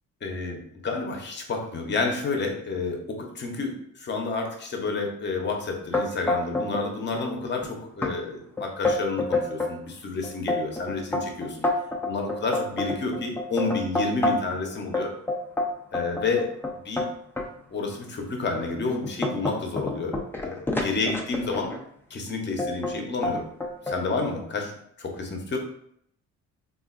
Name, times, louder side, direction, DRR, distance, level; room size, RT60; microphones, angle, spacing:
voice 1, 0.2-11.6 12.1-15.1 15.9-16.5 16.8-17.1 17.7-20.2 20.4-21.7 22.1-23.5 23.9-24.7 25.0-25.6, left 3 dB, 35° left, 2 dB, 0.8 m, -30 dB
sound 1, 5.9-6.9 7.1-7.7 8.0-8.1 8.6-9.8 10.2-14.6 14.9-17.5 18.1-18.2 18.7-21.8 22.6-23.0 23.2-24.0, left 2 dB, 5° left, 0.4 m, -28 dB
3.4 x 2.4 x 2.4 m, 0.70 s
cardioid pair, 90°, 30 cm